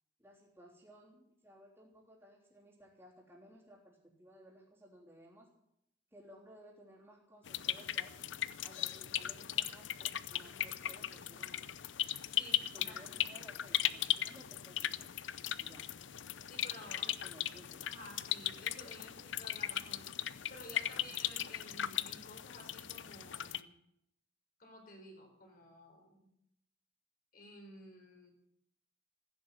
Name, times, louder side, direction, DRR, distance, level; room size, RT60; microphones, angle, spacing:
voice 1, 0.2-5.5 6.1-8.2 8.6-11.7 12.7-15.1 15.6-15.9 17.0-17.8, equal, 15° right, -8 dB, 3.6 m, -58 dB
sound 1, 7.5-23.6, left 12 dB, 90° left, 0.6 m, -38 dB
voice 2, 12.3-13.0 16.4-17.2 17.8-20.1 20.5-23.7 24.6-26.3 27.3-28.3, left 1 dB, 50° left, 2 dB, 4.2 m, -53 dB
15.5 x 10.5 x 7.5 m, 0.75 s
head